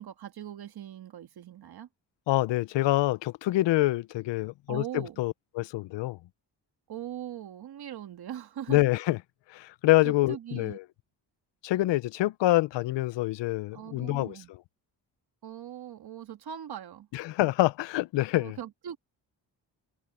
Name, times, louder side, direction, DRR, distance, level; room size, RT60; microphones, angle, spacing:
voice 1, 0.0-1.9 4.7-5.2 6.9-8.9 10.0-10.8 13.7-14.5 15.4-17.1 18.4-19.0, right 10 dB, 60° right, 1.7 m, -40 dB
voice 2, 2.3-4.8 5.2-6.2 8.7-9.2 9.5-10.8 11.6-14.3 17.1-18.6, left 17 dB, 90° left, 0.6 m, -26 dB
cardioid pair, 135°, 42 cm